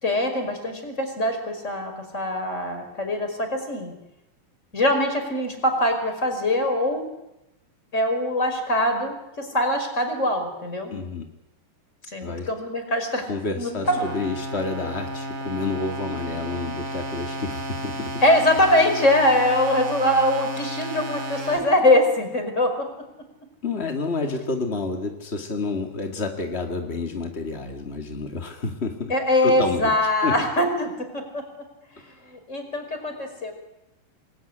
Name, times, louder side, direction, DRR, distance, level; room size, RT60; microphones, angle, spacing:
voice 1, 0.0-3.9 4.7-7.0 7.9-10.9 12.1-13.3 13.6-14.0 18.2-22.8 29.1-31.4 32.2-33.5, left 1 dB, 15° left, 5 dB, 5.0 m, -23 dB
voice 2, 10.9-11.3 12.2-12.5 13.2-18.2 23.6-29.1 29.4-29.9 30.2-30.4 32.0-32.1, left 3 dB, 35° left, 4 dB, 1.0 m, -29 dB
sound 1, 13.8-21.6, right 1 dB, 55° right, 7.0 m, -32 dB
28.0 x 20.5 x 10.0 m, 0.93 s
omnidirectional pair, 4.8 m